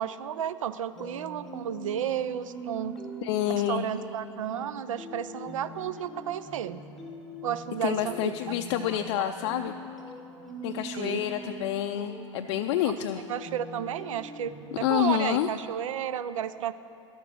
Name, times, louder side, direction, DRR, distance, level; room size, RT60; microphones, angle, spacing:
voice 1, 0.0-3.0 3.5-6.8 7.4-8.6 8.9-9.3 10.9-11.2 13.3-16.7, right 10 dB, 80° right, 14 dB, 0.5 m, -32 dB
sound 1, 0.9-15.0, right 1 dB, ahead, 1.1 m, -43 dB
voice 2, 3.2-3.8 7.8-9.7 10.6-13.2 14.8-15.5, left 12 dB, 55° left, 6 dB, 0.4 m, -28 dB
12.0 x 7.7 x 6.2 m, 2.6 s
hypercardioid pair, 115°, 17 cm